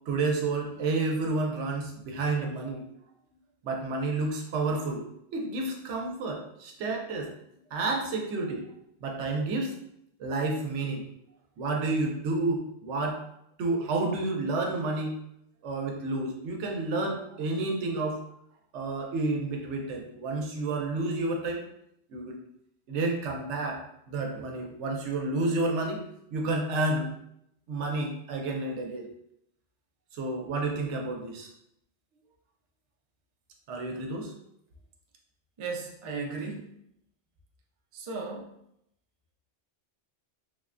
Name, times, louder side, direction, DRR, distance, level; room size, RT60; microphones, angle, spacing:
voice 1, 0.1-2.8 3.6-5.0 5.3-7.3 7.7-8.7 9.0-9.7 10.2-11.0 11.6-13.2 13.6-15.2 15.6-18.2 18.7-21.6 22.1-22.4 22.9-23.8 24.1-26.0 26.3-27.1 27.7-29.1 30.1-31.5 33.7-34.3, right 2 dB, 85° right, 1 dB, 0.9 m, -30 dB
voice 2, 35.6-36.7 37.9-38.5, right 4 dB, 55° right, 1 dB, 0.3 m, -36 dB
3.4 x 2.1 x 2.4 m, 0.76 s
omnidirectional pair, 1.2 m